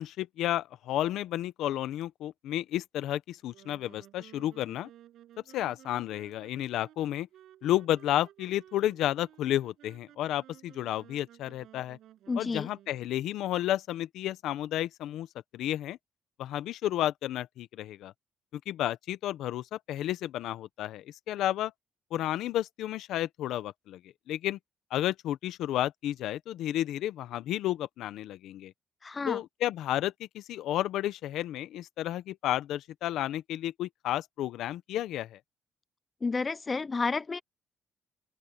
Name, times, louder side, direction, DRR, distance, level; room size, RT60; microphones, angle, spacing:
voice 1, 0.0-4.9 5.5-7.3 7.6-12.0 12.4-15.3 15.5-16.0 16.4-18.1 18.7-21.7 22.1-24.0 24.3-24.6 24.9-28.7 29.3-35.4, left 13 dB, 85° left, 0.9 m, -32 dB
Wind instrument woodwind instrument, 3.4-13.1, right 12 dB, 80° right, 6.8 m, -56 dB
voice 2, 12.3-12.7 29.0-29.4 36.2-37.4, left 4 dB, 30° left, 0.4 m, -30 dB
open air
cardioid pair, 90°, 0 cm